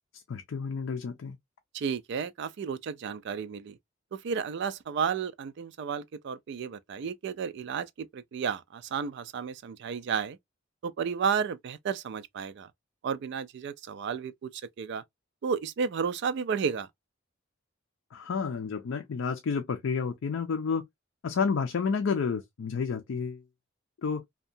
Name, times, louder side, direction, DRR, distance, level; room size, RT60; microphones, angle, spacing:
voice 1, 0.1-1.4 18.1-20.8 21.2-23.4 24.0-24.2, left 5 dB, 75° left, 0.4 m, -30 dB
voice 2, 1.7-3.8 4.1-10.4 10.8-12.7 13.0-15.0 15.4-16.9, right 6 dB, 60° right, 0.3 m, -32 dB
2.7 x 2.2 x 2.5 m
head